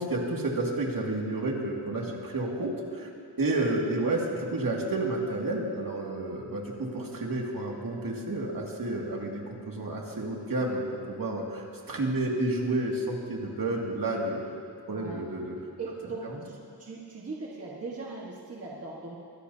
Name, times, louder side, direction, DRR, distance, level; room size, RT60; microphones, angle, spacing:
voice 1, 0.0-3.1 3.4-14.4 14.9-15.6 16.2-16.4, right 2 dB, 55° right, -1 dB, 2.3 m, -30 dB
voice 2, 14.9-15.2 15.8-19.2, right 3 dB, 35° right, -4 dB, 1.5 m, -39 dB
23.5 x 16.5 x 2.8 m, 2.3 s
wide cardioid pair, 150°, 40 cm